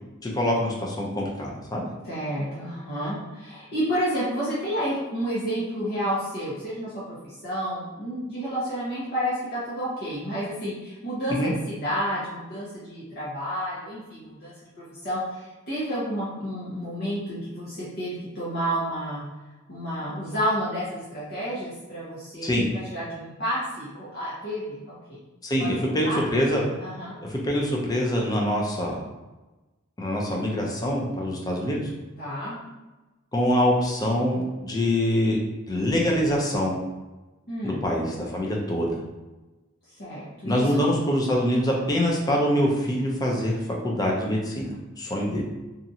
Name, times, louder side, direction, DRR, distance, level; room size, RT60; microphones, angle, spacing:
voice 1, 0.2-1.8 11.3-11.5 22.4-22.6 25.4-26.6 27.3-29.0 30.0-31.9 33.3-35.4 35.7-36.8 37.6-38.0 38.3-39.0 40.4-45.4, equal, 20° left, -2 dB, 0.5 m, -24 dB
voice 2, 2.0-19.2 19.7-22.6 22.9-25.2 25.6-26.2 26.8-27.1 32.2-32.6 37.5-37.8 40.0-40.9, equal, 55° left, -9 dB, 0.9 m, -30 dB
2.9 x 2.5 x 2.7 m, 1.1 s
head